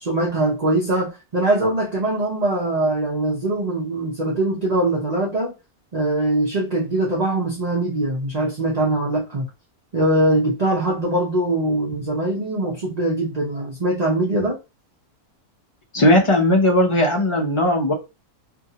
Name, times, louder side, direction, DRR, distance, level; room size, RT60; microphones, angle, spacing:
voice 1, 0.0-5.5 5.9-9.5 9.9-14.6, right 1 dB, 35° right, 0.7 m, -22 dB
voice 2, 15.9-17.9, left 1 dB, 30° left, 0.5 m, -17 dB
2.8 x 2.6 x 2.7 m
omnidirectional pair, 1.6 m